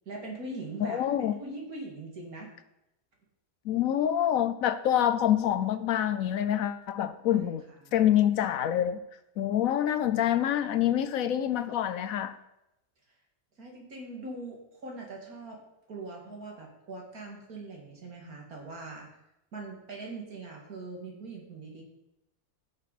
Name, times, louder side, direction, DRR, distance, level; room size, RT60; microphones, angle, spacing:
voice 1, 0.1-2.5 7.3-7.5 9.9-10.3 13.6-15.6 15.9-19.1 19.5-21.8, right 2 dB, 75° right, -1 dB, 2.7 m, -42 dB
voice 2, 0.8-1.3 3.6-7.6 7.9-9.0 9.4-12.4, left 10 dB, 70° left, 12 dB, 1.0 m, -26 dB
14.5 x 6.7 x 4.1 m, 0.88 s
omnidirectional pair, 1.5 m